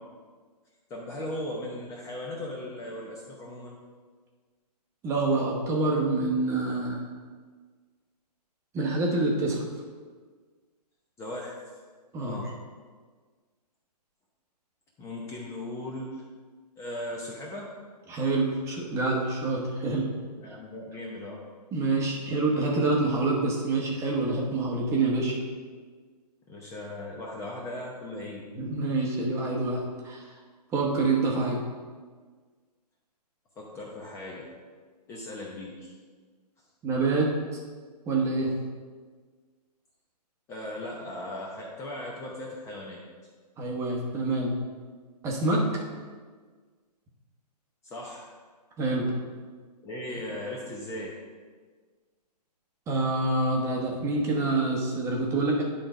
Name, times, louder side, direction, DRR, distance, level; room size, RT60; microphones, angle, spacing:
voice 1, 0.9-3.8 11.2-11.6 12.2-12.5 15.0-16.2 16.8-17.7 20.4-21.4 26.5-28.4 33.6-34.5 35.1-35.9 40.5-43.0 47.8-48.3 49.8-51.1, left 1 dB, 15° left, -3 dB, 0.8 m, -38 dB
voice 2, 5.0-7.0 8.7-9.6 12.1-12.4 18.1-20.1 21.7-25.4 28.5-30.3 30.7-31.6 36.8-37.6 38.1-38.5 43.6-44.5 45.2-45.8 48.8-49.1 52.9-55.6, right 2 dB, 15° right, -1 dB, 1.1 m, -26 dB
10.5 x 3.8 x 5.0 m, 1.5 s
hypercardioid pair, 145°, 21 cm